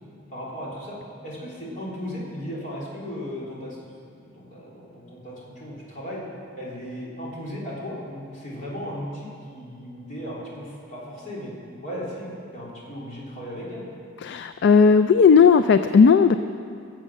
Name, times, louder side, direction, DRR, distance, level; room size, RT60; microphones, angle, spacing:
voice 1, 0.3-1.0 1.2-3.8 4.1-6.2 6.5-11.5 11.8-13.9, equal, 35° left, -6 dB, 3.5 m, -36 dB
voice 2, 14.2-16.4, left 5 dB, 55° left, 10 dB, 0.3 m, -15 dB
15.5 x 7.5 x 7.4 m, 2.4 s
head